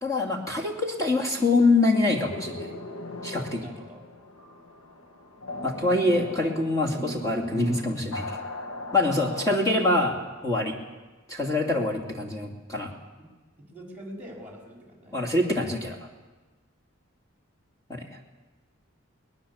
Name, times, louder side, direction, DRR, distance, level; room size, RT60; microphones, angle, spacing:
voice 1, 0.0-2.7 3.2-3.7 5.6-8.2 8.9-10.2 10.4-10.7 11.3-12.9 15.1-16.0 17.9-18.0, left 2 dB, 15° left, -1 dB, 2.6 m, -25 dB
sound 1, 2.1-9.7, left 1 dB, 80° left, 1.6 m, -38 dB
voice 2, 3.6-4.1 13.2-13.3 13.7-15.2, equal, 10° right, 0 dB, 5.2 m, -44 dB
22.5 x 20.0 x 7.3 m, 1.2 s
head